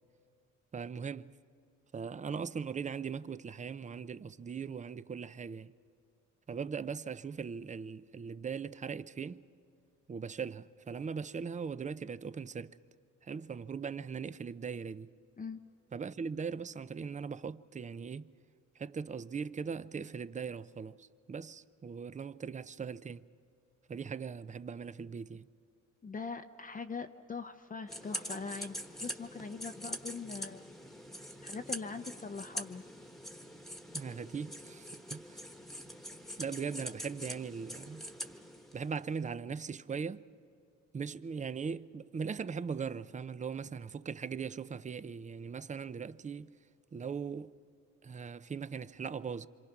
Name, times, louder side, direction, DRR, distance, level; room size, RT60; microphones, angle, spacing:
voice 1, 0.7-1.3 1.9-5.7 6.5-9.4 10.1-12.8 13.2-15.1 15.9-18.3 18.8-23.2 23.9-25.5 33.9-35.4 36.4-38.1 38.7-40.2 40.9-46.5 46.9-47.5 48.0-49.5, right 6 dB, 25° right, 0.5 m, -39 dB
voice 2, 26.0-30.6 31.4-32.8, left 5 dB, 25° left, 0.7 m, -42 dB
sound 1, 27.9-39.1, equal, ahead, 1.3 m, -44 dB
27.5 x 26.0 x 5.9 m
cardioid pair, 90°, 30 cm